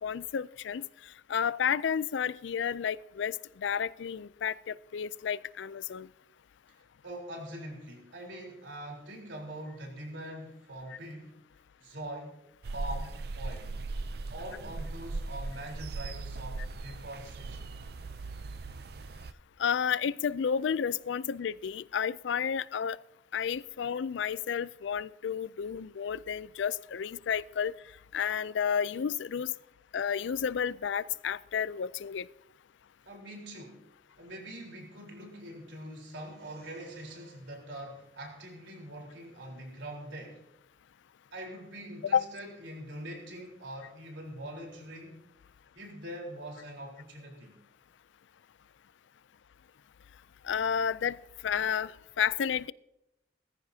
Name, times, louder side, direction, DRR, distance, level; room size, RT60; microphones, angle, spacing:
voice 1, 0.0-6.1 19.6-23.0 23.3-27.7 28.1-29.5 29.9-32.3 42.1-42.2 50.4-51.2 51.4-52.7, left 7 dB, 80° left, 19 dB, 0.4 m, -31 dB
voice 2, 6.7-11.4 11.8-12.4 12.7-13.8 14.3-17.7 33.1-33.9 34.2-40.4 41.3-45.3 45.7-47.5, right 1 dB, 85° right, 0 dB, 3.9 m, -43 dB
sound 1, 12.6-19.3, right 3 dB, 55° right, 0.5 m, -39 dB
19.0 x 14.5 x 2.8 m, 0.87 s
head